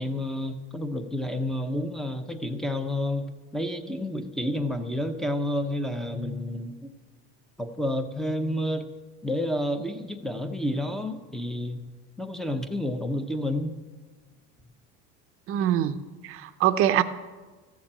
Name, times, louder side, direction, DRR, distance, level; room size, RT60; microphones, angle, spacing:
voice 1, 0.0-6.9 7.6-8.8 9.2-11.8 12.2-13.7, left 1 dB, ahead, 7 dB, 0.7 m, -30 dB
voice 2, 15.5-16.0 16.2-17.0, right 11 dB, 45° right, 11 dB, 0.7 m, -23 dB
14.5 x 7.2 x 8.7 m, 1.3 s
cardioid pair, 155°, 31 cm